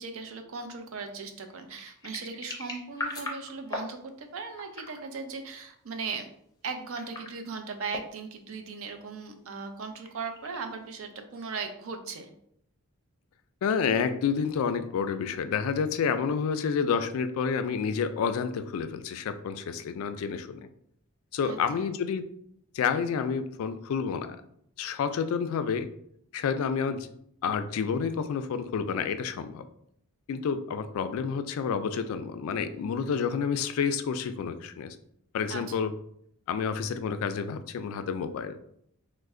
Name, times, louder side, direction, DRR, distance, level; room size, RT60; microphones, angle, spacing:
voice 1, 0.0-6.3 6.6-12.3 21.4-21.9 35.5-35.8, right 4 dB, 65° right, 6 dB, 0.5 m, -38 dB
sound 1, 1.1-3.9 4.5-5.0 6.8-7.4 7.9-8.2 9.7-10.8, left 2 dB, 15° left, 0.5 m, -39 dB
voice 2, 13.6-20.7 21.3-22.3 22.7-24.4 24.8-25.9 26.3-27.1 27.4-29.6 30.3-35.0 35.3-35.9 36.5-38.6, left 6 dB, 70° left, 10 dB, 0.3 m, -29 dB
3.2 x 2.1 x 3.6 m, 0.71 s
head